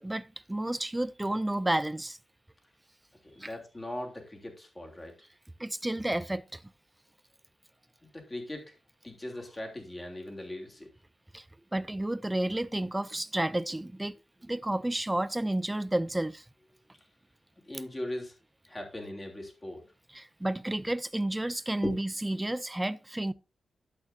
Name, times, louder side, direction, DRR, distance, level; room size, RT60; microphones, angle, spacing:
voice 1, 0.0-2.2 3.4-3.5 5.6-6.6 11.3-11.4 11.7-14.1 14.4-16.4 20.1-23.3, right 1 dB, 10° right, 0.5 m, -31 dB
voice 2, 3.2-5.1 8.0-8.8 9.0-10.9 17.6-18.3 18.7-19.8 21.8-21.9, left 1 dB, 20° left, 3.2 m, -39 dB
11.5 x 8.3 x 2.7 m
cardioid pair, 95°, 0 cm